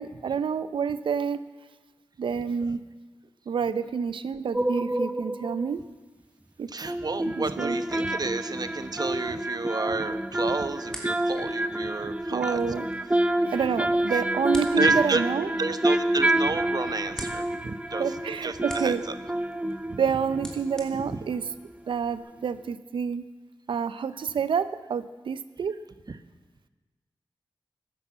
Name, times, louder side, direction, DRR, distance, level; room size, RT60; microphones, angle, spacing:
voice 1, 0.0-1.4 2.2-2.8 3.5-5.8 6.6-6.7 7.6-7.8 12.3-12.9 13.5-15.5 18.0-19.0 20.0-21.4 21.9-23.3 23.7-25.8, right 6 dB, 85° right, 14 dB, 0.6 m, -28 dB
sound 1, 4.5-5.7 6.9-21.4 21.6-21.7, right 1 dB, 15° right, 0.8 m, -28 dB
voice 2, 6.7-12.6 14.8-15.2 15.6-18.0 18.4-19.1 19.9-20.0 21.0-21.2, right 3 dB, 50° right, 11 dB, 1.0 m, -31 dB
sound 2, 10.0-22.2, equal, 5° left, 3.0 m, -48 dB
13.0 x 10.5 x 7.4 m, 1.3 s
cardioid pair, 45°, 8 cm